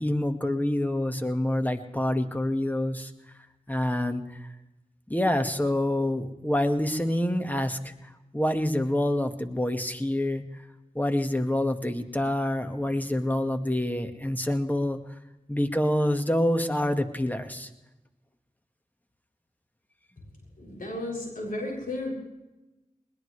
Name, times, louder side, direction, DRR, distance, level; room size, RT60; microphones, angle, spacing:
voice 1, 0.0-3.1 3.7-4.5 5.1-7.9 8.3-10.4 11.0-15.0 15.5-17.7, left 1 dB, 10° left, 7 dB, 1.7 m, -27 dB
voice 2, 20.6-22.1, left 1 dB, 70° left, -2 dB, 7.3 m, -33 dB
21.0 x 20.5 x 3.3 m, 1.0 s
cardioid pair, 45°, 15 cm